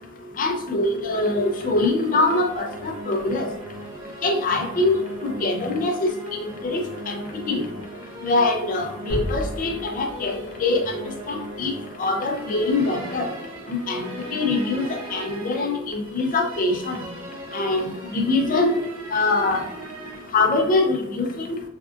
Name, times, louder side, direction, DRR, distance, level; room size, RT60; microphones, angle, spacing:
voice 1, 0.4-3.5 4.2-7.2 7.5-7.6 8.2-11.0 11.3-11.7 12.0-13.3 13.7-17.0 17.5-17.8 18.1-18.8 19.1-19.6 20.3-21.3, left 2 dB, 40° left, 4 dB, 0.4 m, -23 dB
sound 1, 1.1-20.3, right 1 dB, 75° right, 0.7 m, -39 dB
sound 2, 9.1-11.0, equal, 55° right, 1.2 m, -32 dB
3.4 x 2.3 x 2.4 m, 0.83 s
head